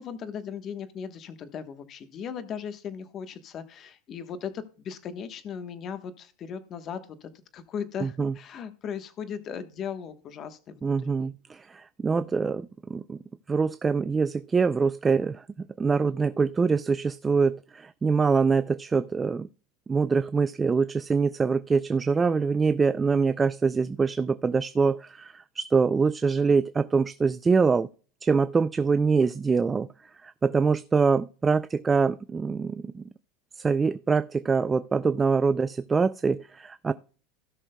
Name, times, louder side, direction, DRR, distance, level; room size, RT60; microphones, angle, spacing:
voice 1, 0.0-11.3, left 7 dB, 35° left, 1.1 m, -37 dB
voice 2, 8.0-8.4 10.8-13.2 13.5-19.5 19.9-27.9 28.2-29.9 30.2-33.0 33.6-36.9, right 5 dB, 15° right, 0.3 m, -24 dB
16.5 x 6.2 x 2.2 m
supercardioid pair, 135°, 0 cm